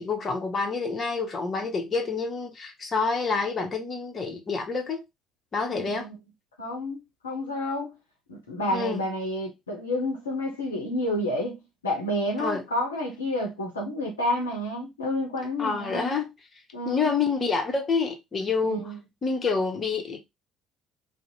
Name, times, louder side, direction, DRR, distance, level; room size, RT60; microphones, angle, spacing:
voice 1, 0.0-5.0 5.5-6.1 8.7-9.0 12.4-12.6 15.6-16.3 16.8-18.9 19.2-20.2, left 4 dB, 35° left, 0.8 m, -28 dB
voice 2, 5.7-6.2 6.6-7.9 8.3-16.1 16.7-17.1 18.6-19.0, left 1 dB, 80° left, 0.6 m, -30 dB
2.6 x 2.0 x 2.7 m
figure-of-eight pair, 50°, 0 cm